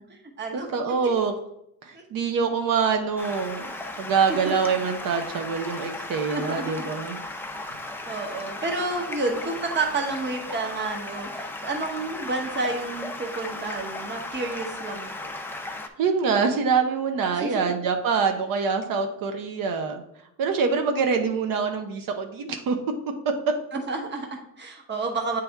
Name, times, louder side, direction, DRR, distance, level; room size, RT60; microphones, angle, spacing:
voice 1, 0.0-0.7 1.9-2.0 4.4-4.5 6.3-6.9 8.0-15.3 17.3-17.7 23.7-25.4, right 3 dB, 35° right, 3 dB, 1.0 m, -30 dB
voice 2, 0.5-1.3 1.8-3.7 4.0-7.2 16.0-20.0 20.4-22.8, right 5 dB, 85° right, 5 dB, 0.8 m, -25 dB
Stream, 3.2-15.9, left 2 dB, 5° left, 0.4 m, -36 dB
8.5 x 3.4 x 3.4 m, 0.76 s
cardioid pair, 150°, 33 cm